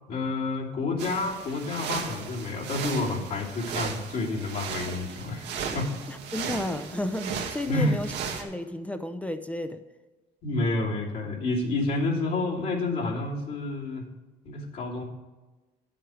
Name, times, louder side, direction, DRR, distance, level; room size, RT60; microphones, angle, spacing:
voice 1, 0.1-5.5 5.7-5.9 7.7-8.0 10.4-14.1 14.4-15.0, left 2 dB, 65° left, -4 dB, 2.8 m, -29 dB
sound 1, 1.0-8.4, right 6 dB, 85° right, 1.6 m, -36 dB
voice 2, 6.1-8.1 8.4-9.8, left 1 dB, 10° left, 9 dB, 0.6 m, -32 dB
10.0 x 7.8 x 5.0 m, 1.2 s
cardioid pair, 110°, 17 cm